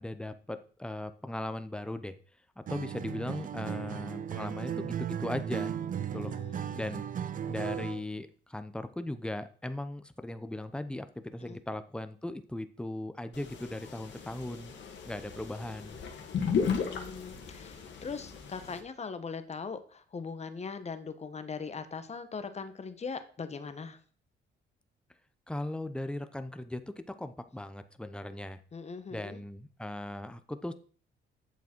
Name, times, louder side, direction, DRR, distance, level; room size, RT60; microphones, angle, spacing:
voice 1, 0.0-2.1 2.6-5.7 6.1-6.4 6.7-7.0 7.5-14.7 15.0-16.0 25.5-28.6 29.1-30.7, left 1 dB, 5° left, 10 dB, 0.8 m, -38 dB
Acoustic guitar, 2.7-8.1, right 9 dB, 45° right, 0.5 m, -36 dB
voice 2, 6.1-6.8 11.4-11.6 16.7-17.7 18.0-24.0 28.7-29.4, left 5 dB, 35° left, 10 dB, 1.1 m, -40 dB
sound 1, 13.3-18.8, left 6 dB, 65° left, 1.8 m, -35 dB
8.3 x 7.1 x 4.5 m, 0.42 s
cardioid pair, 90°, 20 cm